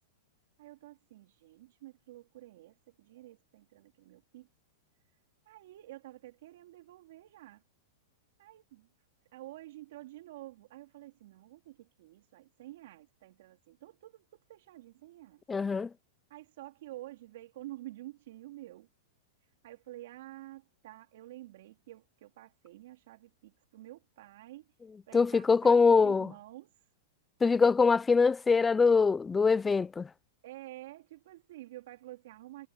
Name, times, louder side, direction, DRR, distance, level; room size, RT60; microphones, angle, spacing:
voice 1, 0.6-4.5 5.4-7.6 8.4-8.9 9.3-15.4 16.3-18.9 19.6-24.7 25.1-26.7 30.4-32.7, right 16 dB, 55° right, 3.8 m, -49 dB
voice 2, 15.5-15.9 25.1-26.3 27.4-30.1, left 4 dB, 10° left, 0.3 m, -23 dB
supercardioid pair, 165°, 0 cm